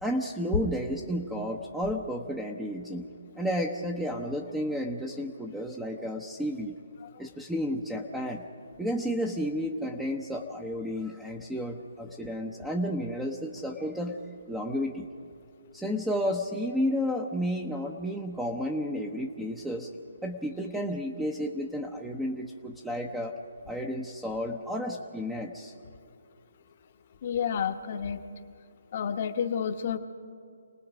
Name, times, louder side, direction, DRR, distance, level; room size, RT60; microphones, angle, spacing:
voice 1, 0.0-3.1 3.4-6.8 7.2-8.4 8.8-14.2 14.5-15.1 15.7-19.9 20.2-23.3 23.7-25.7, equal, 5° right, 1 dB, 0.9 m, -32 dB
voice 2, 27.2-28.2 28.9-30.0, left 7 dB, 45° left, 8 dB, 1.1 m, -30 dB
27.5 x 19.0 x 5.0 m, 2.4 s
figure-of-eight pair, 145°, 0 cm